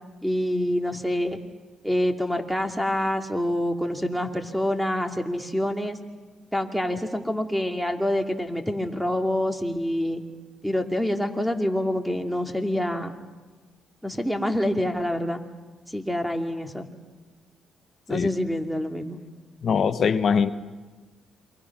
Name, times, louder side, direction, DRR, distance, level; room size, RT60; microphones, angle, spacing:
voice 1, 0.2-1.4 1.8-6.0 6.5-10.2 10.6-13.1 14.0-15.4 15.9-16.9 18.1-19.2, left 1 dB, ahead, 4 dB, 2.4 m, -26 dB
voice 2, 19.6-20.5, left 6 dB, 55° left, 10 dB, 1.1 m, -22 dB
28.5 x 24.0 x 6.0 m, 1.3 s
cardioid pair, 90°, 0 cm